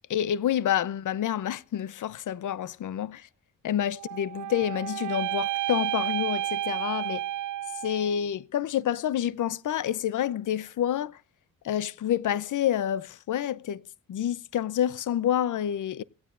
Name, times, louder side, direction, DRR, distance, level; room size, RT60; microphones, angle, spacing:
voice 1, 0.1-3.3 3.6-7.2 7.8-11.2 11.6-13.8 14.1-16.0, left 10 dB, 65° left, 0.6 m, -28 dB
sound 1, 3.9-8.2, right 14 dB, 65° right, 0.5 m, -31 dB
18.0 x 16.0 x 2.5 m
cardioid pair, 90°, 33 cm